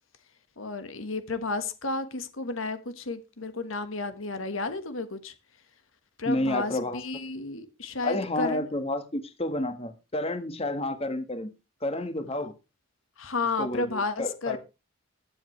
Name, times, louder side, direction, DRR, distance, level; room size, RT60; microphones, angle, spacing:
voice 1, 0.6-5.3 6.2-8.7 13.2-14.6, left 3 dB, 80° left, 1.5 m, -32 dB
voice 2, 6.2-7.0 8.0-11.5 11.8-12.5 13.6-14.6, left 1 dB, 30° left, 1.5 m, -30 dB
20.5 x 7.6 x 3.2 m
head